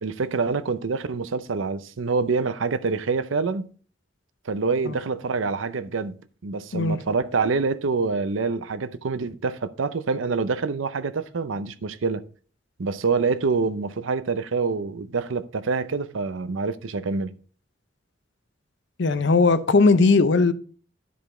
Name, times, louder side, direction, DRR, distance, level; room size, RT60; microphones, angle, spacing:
voice 1, 0.0-3.7 4.5-12.2 12.8-17.3, right 4 dB, 85° right, 0.6 m, -26 dB
voice 2, 19.0-20.5, left 3 dB, 65° left, 0.6 m, -18 dB
12.0 x 5.1 x 3.8 m
head